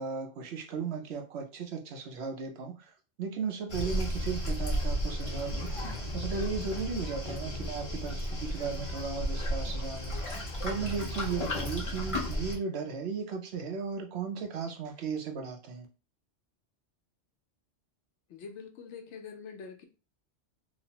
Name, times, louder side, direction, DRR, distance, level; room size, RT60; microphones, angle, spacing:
voice 1, 0.0-5.9 6.1-15.9, right 5 dB, 65° right, 3 dB, 0.8 m, -36 dB
Waves surf, 3.7-12.6, equal, 30° left, 0.8 m, -33 dB
voice 2, 18.3-19.8, left 5 dB, 75° left, 6 dB, 0.9 m, -45 dB
3.0 x 2.0 x 2.8 m, 0.32 s
omnidirectional pair, 1.2 m